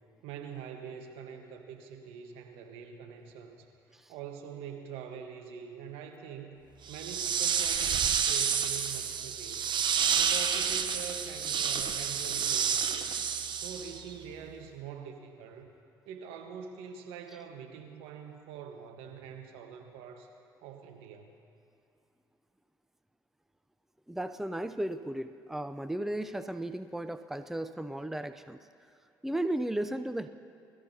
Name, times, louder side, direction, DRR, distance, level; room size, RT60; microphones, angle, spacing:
voice 1, 0.2-3.7 4.1-6.6 6.9-9.7 10.1-13.1 13.5-15.7 16.1-20.3 20.6-21.4, right 7 dB, 75° right, 4 dB, 1.3 m, -44 dB
sound 1, 6.9-14.1, right 7 dB, 50° right, 0.9 m, -29 dB
voice 2, 24.1-28.6 29.2-30.3, right 1 dB, 5° right, 10 dB, 0.6 m, -35 dB
21.5 x 14.0 x 2.8 m, 2.4 s
hypercardioid pair, 60°, 10 cm